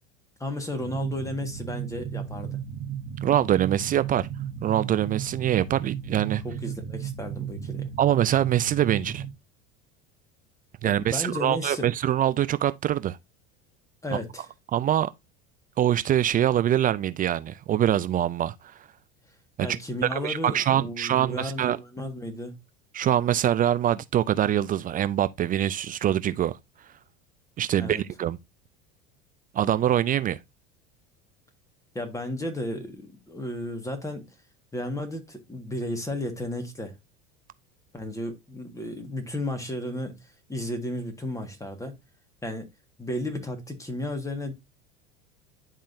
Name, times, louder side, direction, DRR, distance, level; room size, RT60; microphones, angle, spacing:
voice 1, 0.4-2.6 6.4-7.9 11.0-11.9 14.0-14.5 19.6-22.6 27.8-28.0 31.9-34.3 34.7-36.9 37.9-42.0 42.4-42.7 43.0-44.5, left 1 dB, 10° left, 1.7 m, -33 dB
sound 1, 0.8-9.3, right 8 dB, 55° right, 1.3 m, -34 dB
voice 2, 3.2-4.3 4.6-6.4 8.0-9.2 10.8-13.2 14.7-15.1 15.8-18.7 19.6-19.7 20.1-21.8 22.9-26.5 27.6-28.4 29.5-30.4, right 11 dB, 30° right, 0.4 m, -24 dB
10.5 x 3.7 x 2.7 m
hypercardioid pair, 95°, 31 cm